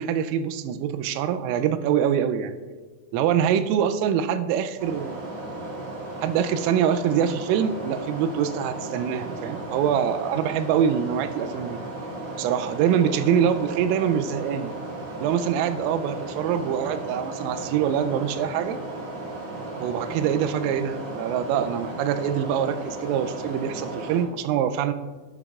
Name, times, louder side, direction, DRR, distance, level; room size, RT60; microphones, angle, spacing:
voice 1, 0.0-2.5 3.1-5.2 6.2-11.8 12.4-14.7 15.2-18.8 19.8-24.9, right 8 dB, 85° right, 10 dB, 3.2 m, -24 dB
sound 1, 4.8-24.2, right 2 dB, 50° right, 1.9 m, -35 dB
14.5 x 11.0 x 2.4 m, 1.4 s
omnidirectional pair, 5.9 m